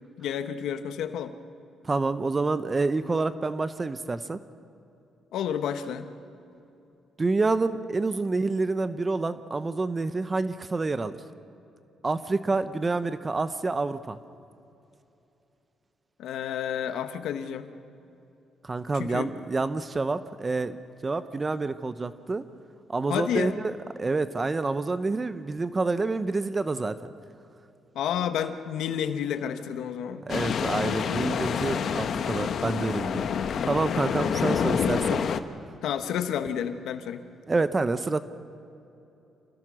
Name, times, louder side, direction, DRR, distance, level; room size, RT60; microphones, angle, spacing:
voice 1, 0.2-1.3 5.3-6.1 16.2-17.7 18.9-19.3 23.1-23.6 27.9-30.2 33.1-33.7 34.2-34.4 35.8-37.2, left 9 dB, 80° left, 9 dB, 1.2 m, -30 dB
voice 2, 1.9-4.4 7.2-11.1 12.0-14.2 18.6-20.8 21.0-22.5 22.9-27.1 30.3-35.2 37.5-38.2, right 3 dB, 25° right, 12 dB, 0.8 m, -28 dB
sound 1, 30.3-35.4, left 7 dB, 60° left, 1.0 m, -27 dB
27.0 x 18.5 x 6.3 m, 2.8 s
cardioid pair, 90°, 0 cm